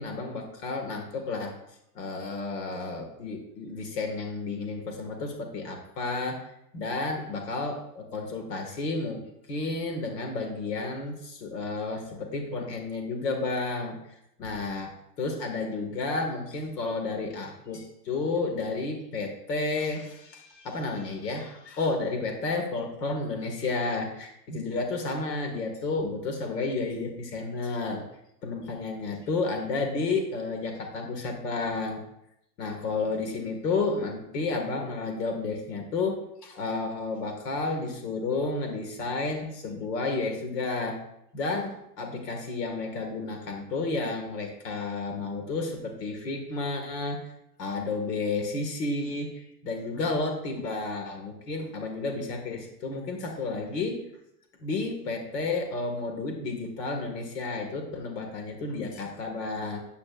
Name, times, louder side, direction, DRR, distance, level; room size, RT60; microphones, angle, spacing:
voice 1, 0.0-1.5 2.0-6.5 6.7-9.2 9.5-28.1 28.4-32.0 32.6-41.0 41.3-47.2 47.6-54.0 54.6-59.8, left 3 dB, 75° left, 3 dB, 1.9 m, -31 dB
9.6 x 8.9 x 2.5 m, 0.80 s
hypercardioid pair, 105°, 49 cm